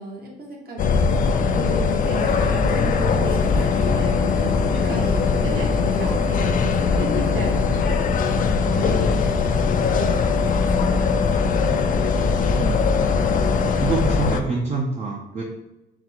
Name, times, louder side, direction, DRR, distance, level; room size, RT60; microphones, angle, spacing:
voice 1, 0.0-4.2 4.7-10.8 11.1-11.2 13.6-13.9, right 2 dB, 50° right, -1 dB, 1.2 m, -35 dB
sound 1, 0.8-14.4, left 5 dB, 45° left, 0.4 m, -20 dB
sound 2, 1.6-14.0, right 1 dB, 75° right, 0.8 m, -36 dB
voice 2, 13.8-15.4, right 3 dB, 35° right, -1 dB, 0.6 m, -26 dB
4.0 x 2.2 x 4.4 m, 0.98 s
cardioid pair, 95°, 20 cm